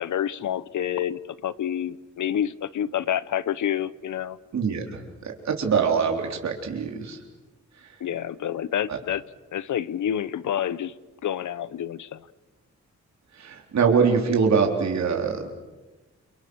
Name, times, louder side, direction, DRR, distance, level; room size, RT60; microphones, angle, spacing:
voice 1, 0.0-4.4 8.0-9.2 9.5-10.9 11.2-12.3, left 10 dB, 80° left, 17 dB, 0.9 m, -28 dB
voice 2, 4.5-7.2 13.4-15.4, right 6 dB, 65° right, 2 dB, 4.0 m, -23 dB
30.0 x 28.0 x 6.4 m, 1.2 s
wide cardioid pair, 160°, 30 cm